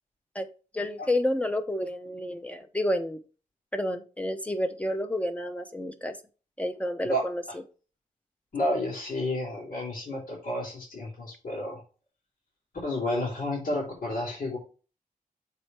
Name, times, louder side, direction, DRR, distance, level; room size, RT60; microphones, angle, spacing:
voice 1, 0.7-3.2 3.7-6.2 6.6-7.4, left 1 dB, 10° left, 8 dB, 0.8 m, -30 dB
voice 2, 8.5-11.8 12.8-14.6, left 1 dB, 70° left, -6 dB, 3.9 m, -31 dB
7.0 x 4.5 x 4.4 m, 0.35 s
wide cardioid pair, 150°, 14 cm